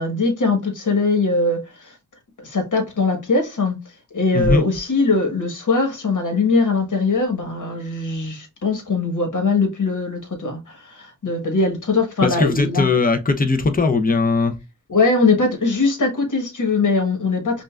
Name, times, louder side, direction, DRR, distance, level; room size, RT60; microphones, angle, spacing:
voice 1, 0.0-1.9 2.4-3.8 4.1-12.9 14.9-17.6, left 3 dB, 80° left, 1.4 m, -21 dB
voice 2, 12.2-14.5, left 3 dB, 30° left, 0.7 m, -19 dB
5.3 x 2.5 x 2.4 m
wide cardioid pair, 65°, 30 cm